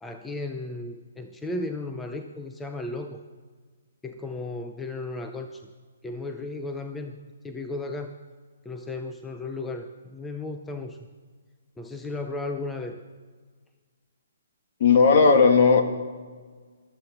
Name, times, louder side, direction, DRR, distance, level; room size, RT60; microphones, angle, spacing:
voice 1, 0.0-3.2 4.0-5.6 6.0-7.2 7.4-8.1 8.6-11.0 11.8-13.0, left 2 dB, 5° left, 5 dB, 0.6 m, -34 dB
voice 2, 14.8-15.8, left 5 dB, 40° left, 5 dB, 1.9 m, -16 dB
14.5 x 13.0 x 7.2 m, 1.5 s
hypercardioid pair, 165°, 0 cm